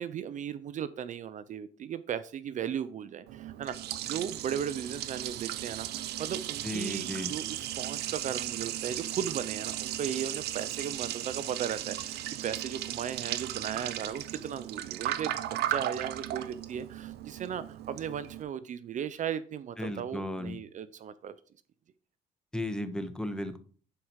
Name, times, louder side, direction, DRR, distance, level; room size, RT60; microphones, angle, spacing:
voice 1, 0.0-21.3, right 8 dB, 45° right, 14 dB, 0.6 m, -36 dB
Liquid, 3.3-18.4, right 13 dB, 75° right, 0.8 m, -36 dB
voice 2, 6.6-7.3 19.8-20.6 22.5-23.6, left 1 dB, 5° left, 9 dB, 1.2 m, -35 dB
11.5 x 5.0 x 4.7 m, 0.41 s
cardioid pair, 110°, 17 cm